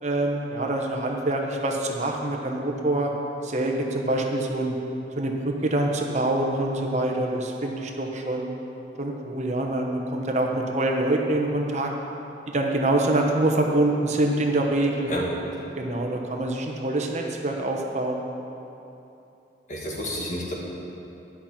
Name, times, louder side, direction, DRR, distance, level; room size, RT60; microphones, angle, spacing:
voice 1, 0.0-3.1 3.4-4.7 5.2-8.5 9.0-11.9 12.5-15.1 15.8-18.2, right 1 dB, 40° right, 1 dB, 0.9 m, -25 dB
voice 2, 19.7-20.5, equal, 45° left, -3 dB, 2.1 m, -30 dB
11.5 x 5.8 x 8.5 m, 2.9 s
head